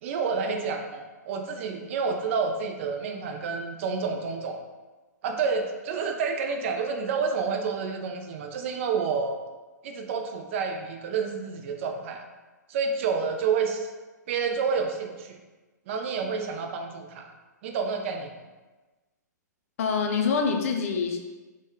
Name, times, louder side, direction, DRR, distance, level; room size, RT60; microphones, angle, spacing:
voice 1, 0.0-4.6 5.2-9.4 9.8-12.2 12.7-13.9 14.3-15.4 15.9-17.3 17.6-18.3, right 5 dB, 45° right, 4 dB, 0.4 m, -29 dB
voice 2, 19.8-21.2, left 5 dB, 50° left, 3 dB, 0.5 m, -25 dB
3.0 x 2.1 x 3.6 m, 1.2 s
figure-of-eight pair, 115°, 10 cm